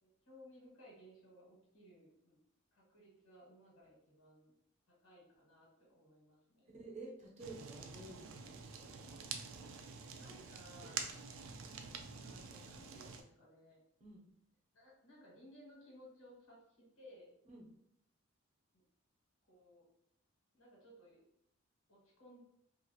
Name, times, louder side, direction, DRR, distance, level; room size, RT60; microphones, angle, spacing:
voice 1, 0.0-2.4 2.7-4.5 5.0-6.7 10.1-11.0 12.2-13.8 14.7-17.3 18.7-18.8 19.5-19.9 20.5-21.2 21.9-22.4, equal, 80° left, -4 dB, 1.3 m, -60 dB
voice 2, 6.8-9.1 14.0-14.2 17.5-17.7, right 2 dB, 35° right, -1 dB, 0.7 m, -51 dB
Fire, 7.4-13.2, right 5 dB, 75° right, 0.4 m, -47 dB
2.9 x 2.5 x 2.7 m, 0.74 s
head